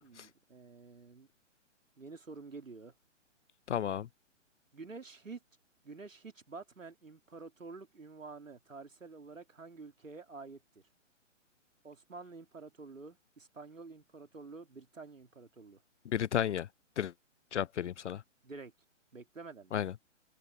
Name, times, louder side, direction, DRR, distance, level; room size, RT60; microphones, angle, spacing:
voice 1, 0.0-1.3 2.0-2.9 4.7-5.4 5.8-10.8 11.8-15.8 18.4-18.7 19.1-19.8, right 4 dB, 80° right, 3.0 m, -49 dB
voice 2, 3.7-4.1 16.1-16.7 17.0-17.1 17.5-18.2 19.7-19.9, left 10 dB, 65° left, 0.5 m, -32 dB
figure-of-eight pair, 135°, 38 cm